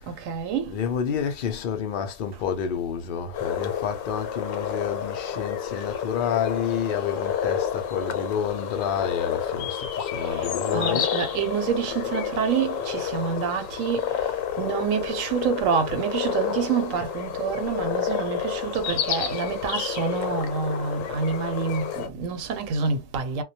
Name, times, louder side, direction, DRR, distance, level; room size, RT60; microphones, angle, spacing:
voice 1, 0.1-0.8 10.1-23.4, right 6 dB, 85° right, 1.0 m, -27 dB
voice 2, 0.7-11.1, left 7 dB, 65° left, 0.5 m, -29 dB
sound 1, 3.3-22.1, left 8 dB, 80° left, 1.0 m, -30 dB
2.2 x 2.1 x 2.6 m
omnidirectional pair, 1.4 m